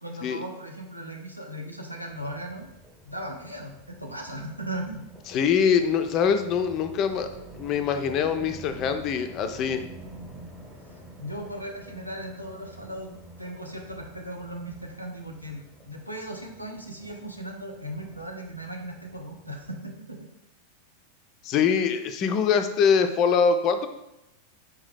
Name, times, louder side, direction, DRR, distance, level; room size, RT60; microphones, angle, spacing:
voice 1, 0.0-2.7 3.0-5.0 10.9-20.2, right 1 dB, 90° right, 1 dB, 0.6 m, -37 dB
sound 1, 2.1-19.8, right 1 dB, 10° right, 0.8 m, -48 dB
voice 2, 5.3-7.3 7.6-9.8 21.4-23.9, left 6 dB, 35° left, 8 dB, 0.4 m, -23 dB
4.6 x 2.7 x 3.4 m, 0.88 s
figure-of-eight pair, 90°, 0 cm